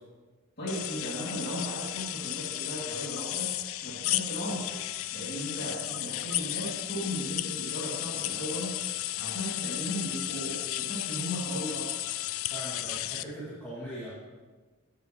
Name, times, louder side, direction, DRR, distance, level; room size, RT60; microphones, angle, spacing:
voice 1, 0.6-3.5 3.8-4.6 5.1-8.7 9.1-11.9, equal, 45° left, -6 dB, 2.6 m, -36 dB
sound 1, 0.7-13.2, left 15 dB, 65° left, 0.3 m, -34 dB
voice 2, 12.4-14.1, equal, 10° left, -11 dB, 2.3 m, -40 dB
16.0 x 6.8 x 3.1 m, 1.4 s
head